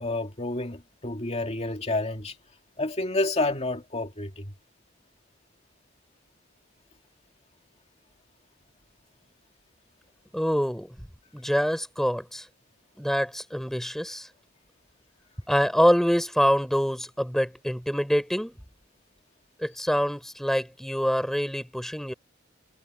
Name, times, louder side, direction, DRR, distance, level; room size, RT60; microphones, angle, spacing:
voice 1, 0.0-2.4 2.8-4.5, left 2 dB, 30° left, 2.3 m, -29 dB
voice 2, 10.3-10.9 11.3-12.5 13.0-14.3 15.5-18.5 19.6-22.1, equal, ahead, 3.4 m, -25 dB
head